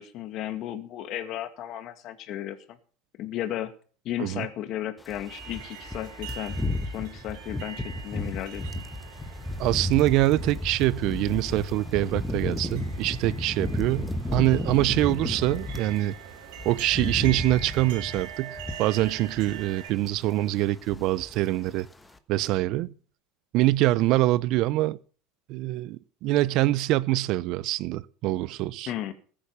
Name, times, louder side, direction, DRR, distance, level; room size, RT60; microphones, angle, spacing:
voice 1, 0.0-2.6 3.2-3.7 4.0-6.6 6.9-8.8 28.9-29.1, left 12 dB, 50° left, 2.0 m, -34 dB
sound 1, 5.1-16.0 16.3-19.8 20.0-20.3 20.6-21.4 21.7-21.9, left 1 dB, 10° left, 1.4 m, -33 dB
sound 2, 5.3-19.9, right 8 dB, 75° right, 4.3 m, -43 dB
voice 2, 9.6-16.1 16.6-21.9 22.3-22.9 23.5-25.0 25.5-28.9, right 16 dB, 60° right, 0.6 m, -24 dB
15.0 x 8.7 x 6.9 m
supercardioid pair, 110°, 0 cm